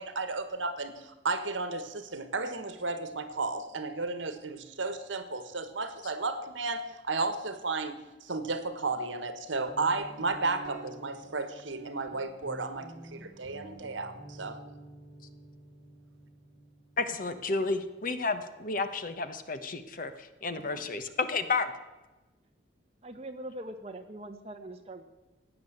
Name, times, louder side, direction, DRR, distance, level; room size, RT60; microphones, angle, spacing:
voice 1, 0.0-14.6 20.7-20.8, right 3 dB, 85° right, 11 dB, 1.5 m, -33 dB
Guitar, 9.7-19.2, right 2 dB, 50° right, 2.8 m, -50 dB
voice 2, 17.0-21.7, left 3 dB, 45° left, 10 dB, 1.2 m, -31 dB
voice 3, 23.0-25.0, right 1 dB, 35° right, 5 dB, 1.5 m, -42 dB
16.0 x 9.4 x 8.0 m, 1.1 s
head